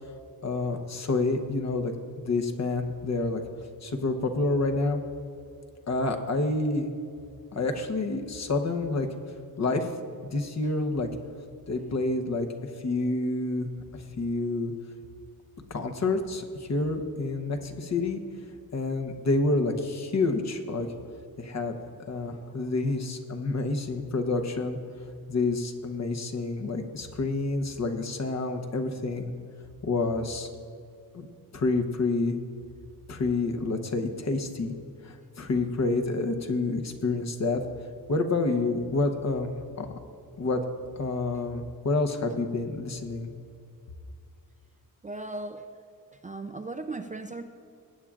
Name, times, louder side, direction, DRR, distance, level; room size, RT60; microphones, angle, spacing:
voice 1, 0.4-3.4 3.8-5.0 5.9-6.9 7.5-9.1 9.6-9.9 10.2-11.1 11.7-13.7 13.9-14.7 15.7-18.2 18.7-20.9 21.4-21.8 22.1-24.8 25.3-29.3 29.8-30.5 31.1-31.3 31.5-32.4 33.1-34.7 35.0-37.6 38.1-39.5 39.8-39.9 40.4-40.6 41.0-43.3, left 3 dB, 45° left, 5 dB, 0.9 m, -28 dB
voice 2, 45.0-45.7 46.1-47.4, right 2 dB, 20° right, 6 dB, 0.4 m, -37 dB
18.5 x 8.8 x 2.4 m, 2.5 s
wide cardioid pair, 140°, 36 cm